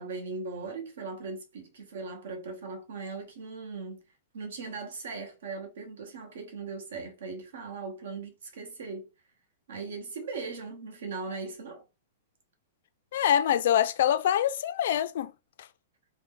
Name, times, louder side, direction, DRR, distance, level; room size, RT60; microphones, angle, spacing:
voice 1, 0.0-4.0 4.3-9.1 9.7-11.8, right 4 dB, 75° right, 1.0 m, -39 dB
voice 2, 13.1-15.3, left 10 dB, 60° left, 0.3 m, -25 dB
2.7 x 2.0 x 3.6 m
supercardioid pair, 170°, 0 cm